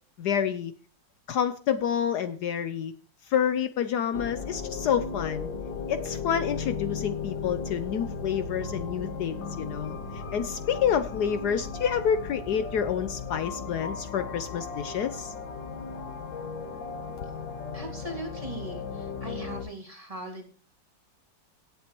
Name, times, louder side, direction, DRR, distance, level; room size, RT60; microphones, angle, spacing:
voice 1, 0.2-0.7 1.3-2.9 3.3-5.5 5.9-10.0 10.3-15.3, left 8 dB, 70° left, 11 dB, 1.2 m, -28 dB
sound 1, 4.1-19.6, left 5 dB, 85° left, 2.1 m, -36 dB
voice 2, 17.7-20.5, right 2 dB, 20° right, 2 dB, 2.1 m, -39 dB
18.0 x 8.0 x 3.0 m, 0.41 s
omnidirectional pair, 2.0 m